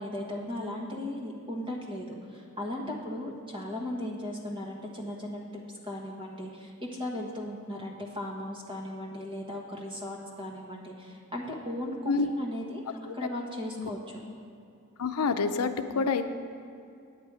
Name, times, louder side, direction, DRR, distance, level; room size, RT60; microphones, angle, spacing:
voice 1, 0.0-5.4 5.9-12.8 13.1-14.2, left 1 dB, 20° right, -1 dB, 1.3 m, -37 dB
voice 2, 15.0-16.3, left 4 dB, 90° left, 8 dB, 0.5 m, -27 dB
9.4 x 8.9 x 4.8 m, 2.5 s
head